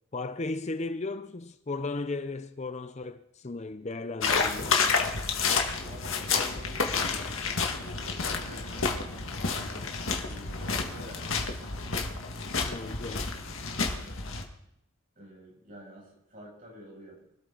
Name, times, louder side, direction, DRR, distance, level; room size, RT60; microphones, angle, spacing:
voice 1, 0.1-4.8 12.7-13.3, left 3 dB, 30° left, 0.5 m, -35 dB
sound 1, 4.2-14.4, left 4 dB, 75° left, 1.9 m, -30 dB
voice 2, 5.9-10.0 10.2-12.1 15.1-17.2, equal, 40° right, 6.8 m, -49 dB
24.0 x 12.5 x 3.9 m
head